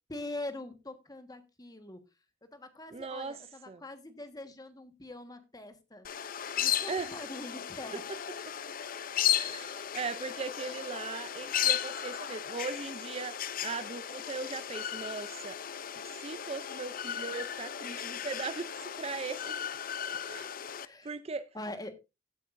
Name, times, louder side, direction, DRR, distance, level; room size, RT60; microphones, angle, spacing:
voice 1, 0.1-2.0 2.4-6.1 6.6-8.0 10.6-10.8 20.8-21.1 21.5-21.9, left 1 dB, 20° left, 1.4 m, -43 dB
voice 2, 2.9-3.4 3.7-3.8 6.9-7.1 8.5-8.6 9.3-15.6 16.0-19.6 20.2-20.6 21.0-21.5, right 4 dB, 30° right, 0.5 m, -39 dB
sound 1, 6.0-20.9, left 10 dB, 45° left, 0.6 m, -35 dB
16.0 x 8.3 x 2.5 m
head